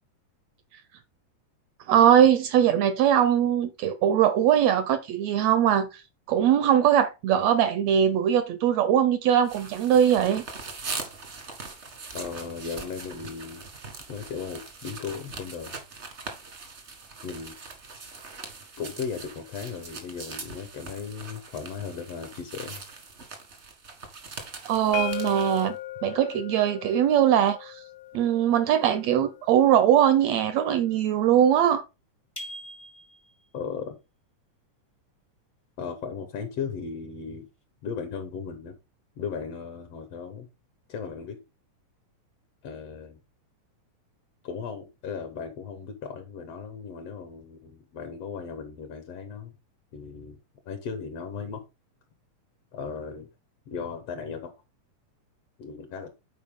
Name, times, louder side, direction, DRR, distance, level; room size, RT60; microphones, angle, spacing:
voice 1, 1.9-6.0 6.3-10.4 24.6-25.7 26.0-27.8 28.1-31.8, right 10 dB, 80° right, 1.5 m, -21 dB
sound 1, 9.4-25.7, right 4 dB, 55° right, 0.7 m, -41 dB
voice 2, 12.1-13.6 14.1-15.8 17.2-17.6 18.8-22.8 33.5-34.0 35.8-37.5 37.8-38.8 39.2-40.5 40.9-41.4 42.6-43.2 44.4-49.5 49.9-50.4 50.7-51.6 52.7-53.3 53.7-54.5 55.6-56.1, left 6 dB, 65° left, 1.7 m, -36 dB
sound 2, 24.9-30.7, left 16 dB, 90° left, 2.1 m, -39 dB
sound 3, 32.4-33.4, equal, 25° left, 0.4 m, -41 dB
9.7 x 4.5 x 3.6 m
omnidirectional pair, 3.6 m